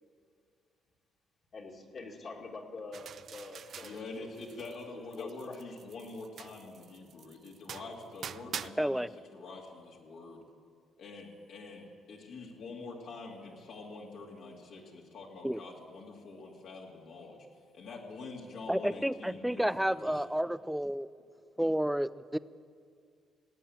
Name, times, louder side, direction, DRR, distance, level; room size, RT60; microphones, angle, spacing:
voice 1, 1.5-4.3 5.1-5.6, left 3 dB, 50° left, -2 dB, 2.4 m, -45 dB
sound 1, 2.9-4.8 5.1-8.7, right 8 dB, 55° right, 0.4 m, -45 dB
voice 2, 3.8-9.1 9.3-10.4 11.0-17.4 17.7-20.2, left 3 dB, 70° left, -3 dB, 2.6 m, -46 dB
voice 3, 8.8-9.1 15.4-15.6 18.7-21.1 21.6-22.4, equal, 5° right, 17 dB, 0.5 m, -30 dB
18.5 x 8.6 x 8.8 m, 2.2 s
supercardioid pair, 75°, 0 cm